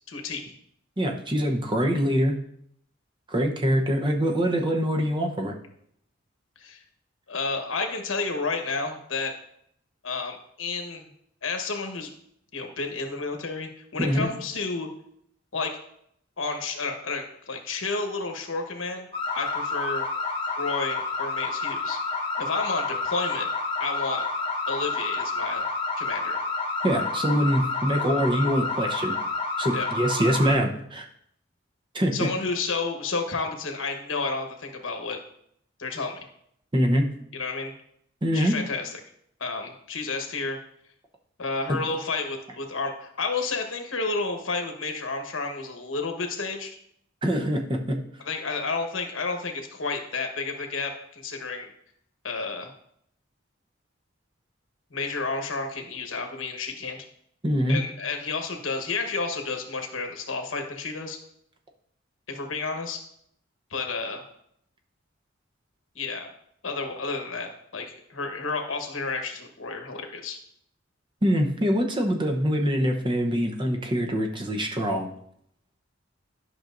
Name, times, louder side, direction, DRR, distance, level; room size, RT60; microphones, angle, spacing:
voice 1, 0.1-0.5 6.6-6.8 7.3-9.3 10.0-11.1 11.4-12.1 12.5-14.9 15.5-15.7 16.4-20.0 20.6-22.0 22.4-23.5 23.8-24.3 24.7-25.6 26.0-26.4 29.7-29.9 32.1-35.2 35.8-36.2 37.3-37.7 38.3-38.9 39.4-40.6 41.4-46.7 48.2-51.7 52.2-52.7 54.9-57.0 57.7-61.2 62.3-63.0 63.7-64.2 65.9-66.3 66.6-70.4, left 4 dB, 90° left, 4 dB, 1.2 m, -31 dB
voice 2, 1.0-2.4 3.3-5.5 14.0-14.3 26.8-29.1 29.6-31.1 31.9-32.3 36.7-37.1 38.2-38.6 41.7-41.8 47.2-48.0 57.4-57.8 71.2-75.1, equal, 25° right, 2 dB, 0.8 m, -24 dB
sound 1, 19.1-30.6, left 3 dB, 30° left, 1.1 m, -29 dB
11.0 x 5.9 x 2.6 m, 0.70 s
head